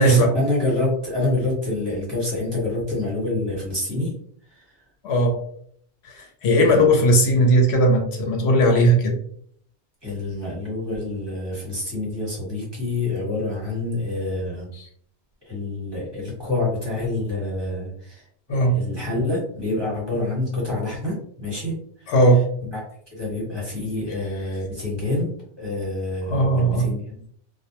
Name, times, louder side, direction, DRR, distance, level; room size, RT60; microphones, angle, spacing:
voice 1, 0.0-4.1 4.5-4.8 6.6-7.0 10.0-14.7 15.4-22.1 22.7-22.8 23.1-25.3 25.6-27.3, left 2 dB, 25° right, -6 dB, 1.1 m, -27 dB
voice 2, 5.0-5.4 6.0-9.2 18.5-18.8 22.1-22.4 26.3-26.9, right 1 dB, 80° left, 2 dB, 0.9 m, -17 dB
2.2 x 2.0 x 2.8 m, 0.63 s
omnidirectional pair, 1.1 m